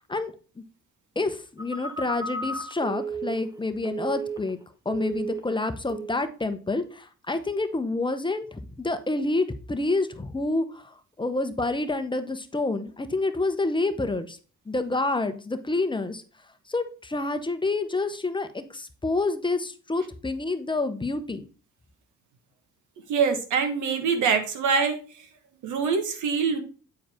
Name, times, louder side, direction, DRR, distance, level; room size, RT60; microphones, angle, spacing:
voice 1, 1.2-4.6 4.8-14.4 14.7-16.2 16.7-21.5, left 2 dB, 15° left, 9 dB, 0.8 m, -28 dB
Telephone, 1.6-4.6 4.9-5.6 5.9-6.2, right 3 dB, 15° right, 1.1 m, -34 dB
voice 2, 23.1-25.0 25.6-26.6, right 5 dB, 80° right, 7 dB, 1.5 m, -24 dB
8.5 x 4.6 x 3.6 m, 0.37 s
cardioid pair, 90°, 30 cm